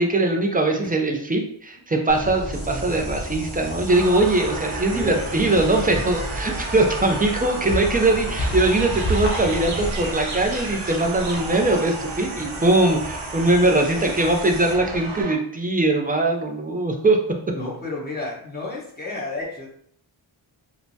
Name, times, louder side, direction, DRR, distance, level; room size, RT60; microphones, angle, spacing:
voice 1, 0.0-17.2, right 2 dB, 20° right, 3 dB, 0.3 m, -21 dB
sound 1, 2.1-15.2, equal, 55° left, 0.8 m, -32 dB
sound 2, 2.5-14.7, right 3 dB, 55° right, 0.8 m, -40 dB
voice 2, 2.7-3.1 4.8-5.4 7.6-7.7 13.4-13.5 17.5-19.7, left 3 dB, 20° left, -5 dB, 1.0 m, -32 dB
sound 3, 3.9-15.4, right 3 dB, 80° right, 0.7 m, -34 dB
3.2 x 2.0 x 2.6 m, 0.63 s
wide cardioid pair, 95°, 48 cm